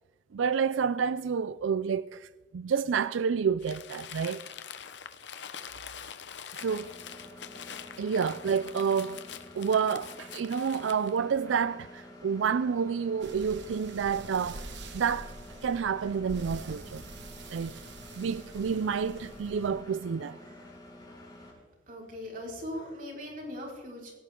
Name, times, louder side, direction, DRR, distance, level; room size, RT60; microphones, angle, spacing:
voice 1, 0.3-4.4 6.6-6.9 8.0-9.2 9.5-15.3 15.6-17.0 17.5-17.8 18.2-20.4, right 6 dB, 90° right, 0.4 m, -29 dB
Crumpling crinkling, 3.6-11.2, left 8 dB, 65° left, 1.0 m, -44 dB
Engine, 6.6-21.5, left 1 dB, 20° left, 6.3 m, -49 dB
sound 1, 13.2-19.8, right 2 dB, 65° right, 1.5 m, -45 dB
voice 2, 20.4-20.7 21.4-21.5 21.9-24.1, left 1 dB, 45° right, 4.7 m, -41 dB
18.0 x 17.5 x 3.7 m
head